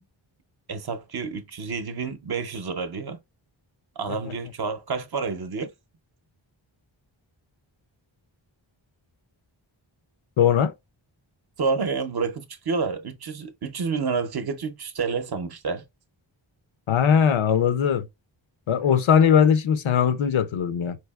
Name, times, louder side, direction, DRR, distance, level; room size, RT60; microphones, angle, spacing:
voice 1, 0.7-3.2 4.0-5.7 11.6-15.8, right 4 dB, 55° right, 0.6 m, -29 dB
voice 2, 10.4-10.7 16.9-18.1 18.7-21.0, left 8 dB, 80° left, 0.6 m, -20 dB
4.6 x 2.7 x 2.3 m
wide cardioid pair, 90°, 47 cm